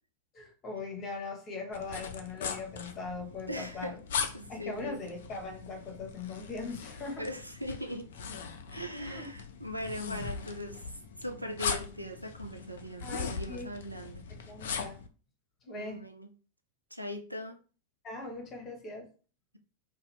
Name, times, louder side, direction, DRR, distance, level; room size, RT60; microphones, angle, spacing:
voice 1, 0.3-4.0 4.5-7.3 9.0-9.3 13.0-13.7 14.3-15.0 15.6-16.0 18.0-19.1, left 3 dB, 25° left, 1.0 m, -40 dB
sound 1, 1.7-15.1, left 6 dB, 60° left, 0.4 m, -40 dB
voice 2, 3.5-4.0 4.3-5.1 7.2-8.1 8.7-10.8 11.2-14.3 15.7-16.3 16.9-17.6, equal, 90° right, 0.4 m, -40 dB
2.7 x 2.4 x 3.1 m
figure-of-eight pair, 90°, 0 cm